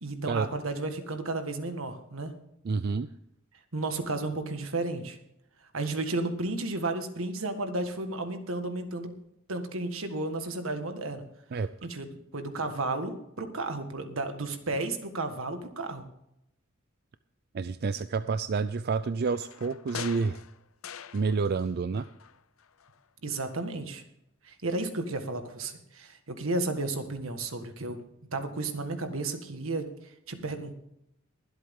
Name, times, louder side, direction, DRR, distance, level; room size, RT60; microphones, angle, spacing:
voice 1, 0.0-2.3 3.7-5.2 5.7-9.1 9.5-11.2 11.8-16.0 23.2-24.0 24.4-28.0 28.3-30.7, right 2 dB, 80° right, 7 dB, 1.6 m, -33 dB
voice 2, 2.6-3.1 11.5-11.7 17.5-20.4 21.1-22.1, right 4 dB, 50° right, 12 dB, 0.4 m, -29 dB
sound 1, 19.3-21.7 22.0-23.0 23.4-23.5, left 8 dB, 90° left, 0.6 m, -43 dB
22.5 x 8.0 x 3.7 m, 0.79 s
head